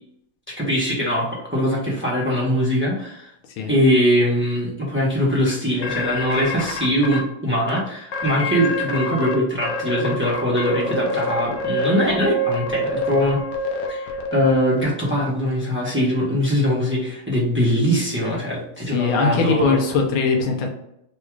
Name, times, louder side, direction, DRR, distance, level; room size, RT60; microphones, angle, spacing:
voice 1, 0.5-3.3 3.7-13.4 13.9-19.8, equal, 20° right, -4 dB, 0.3 m, -22 dB
sound 1, 5.8-7.2 7.7-7.8 8.1-9.3 9.6-14.8, left 1 dB, 65° left, 0.9 m, -26 dB
voice 2, 18.9-20.7, left 4 dB, 85° left, 2 dB, 1.6 m, -21 dB
4.0 x 2.4 x 4.5 m, 0.78 s
omnidirectional pair, 2.2 m